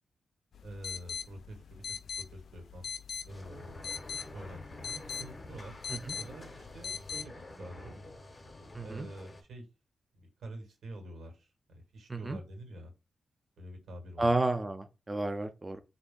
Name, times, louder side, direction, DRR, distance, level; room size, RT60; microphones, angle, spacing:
sound 1, 0.5-7.3, left 6 dB, 65° left, 0.3 m, -42 dB
voice 1, 0.6-2.9 3.2-3.9 4.3-5.8 6.1-8.0 8.8-9.7 10.1-12.9 13.6-14.4, right 1 dB, 85° right, 1.5 m, -47 dB
sound 2, 3.3-9.4, left 2 dB, 25° left, 0.6 m, -49 dB
voice 2, 8.7-9.1 12.1-12.4 14.2-15.8, right 2 dB, 15° right, 0.3 m, -31 dB
4.1 x 2.5 x 3.7 m
wide cardioid pair, 175°, 0 cm